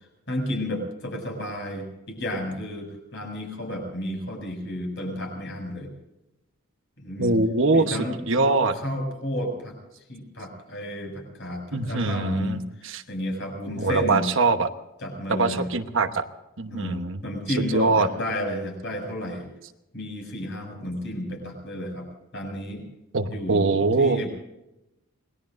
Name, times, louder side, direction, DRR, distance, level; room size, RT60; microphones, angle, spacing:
voice 1, 0.3-5.9 7.0-7.4 7.7-8.2 8.7-9.8 10.1-14.2 15.0-15.7 16.7-19.5 19.9-22.9 23.2-24.3, left 1 dB, 55° left, 2 dB, 6.8 m, -32 dB
voice 2, 7.2-8.7 11.7-13.0 13.7-14.7 15.3-16.2 16.6-17.2 17.7-18.1 23.1-24.2, right 3 dB, 60° right, 7 dB, 1.1 m, -23 dB
27.5 x 20.0 x 2.6 m, 0.93 s
head